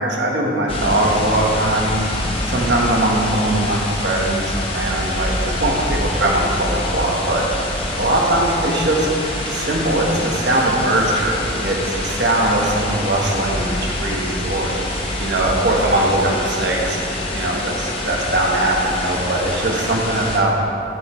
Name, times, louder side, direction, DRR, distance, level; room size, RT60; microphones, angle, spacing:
voice 1, 0.0-2.0 2.5-7.7 8.0-9.1 9.4-14.9 15.2-17.0 17.3-20.5, right 1 dB, 60° right, -2 dB, 1.3 m, -20 dB
sound 1, 0.7-20.4, left 1 dB, 30° left, 1.0 m, -25 dB
8.2 x 7.5 x 4.4 m, 2.7 s
head